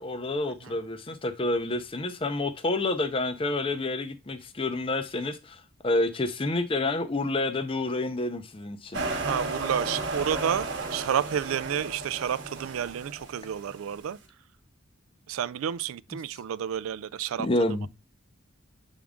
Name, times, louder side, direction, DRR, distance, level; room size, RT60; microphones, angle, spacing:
voice 1, 0.0-9.0 17.4-17.9, left 2 dB, 25° left, 0.6 m, -29 dB
sound 1, 8.9-13.9, right 3 dB, 55° right, 1.0 m, -34 dB
voice 2, 9.2-14.2 15.3-17.9, right 9 dB, 75° right, 0.3 m, -30 dB
7.2 x 3.6 x 3.6 m
head